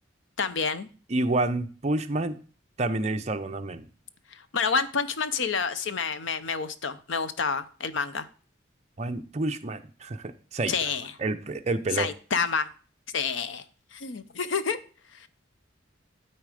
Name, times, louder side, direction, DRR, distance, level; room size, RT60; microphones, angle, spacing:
voice 1, 0.4-0.9 4.3-8.3 10.7-11.1 11.9-12.7 13.1-13.6 13.9-14.8 15.1-15.3, left 5 dB, 70° left, 0.7 m, -29 dB
voice 2, 1.1-2.4 2.8-3.9 9.0-10.7 11.2-12.1, right 2 dB, 35° right, 0.6 m, -28 dB
12.5 x 4.2 x 5.0 m
head